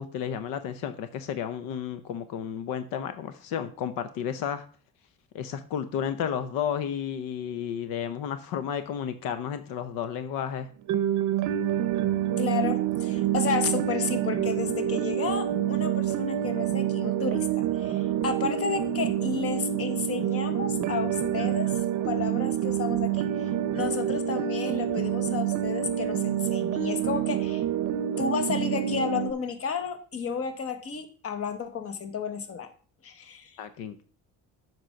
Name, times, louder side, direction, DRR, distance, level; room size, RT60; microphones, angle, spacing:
voice 1, 0.0-4.7 5.3-10.7 33.6-34.0, left 8 dB, 85° left, 11 dB, 0.8 m, -32 dB
sound 1, 10.9-29.3, right 10 dB, 60° right, 0.6 m, -27 dB
voice 2, 12.4-21.7 22.0-27.6 28.2-32.7 33.0-33.6, left 6 dB, 45° left, 8 dB, 1.3 m, -32 dB
7.7 x 4.7 x 5.8 m, 0.42 s
cardioid pair, 135°, 33 cm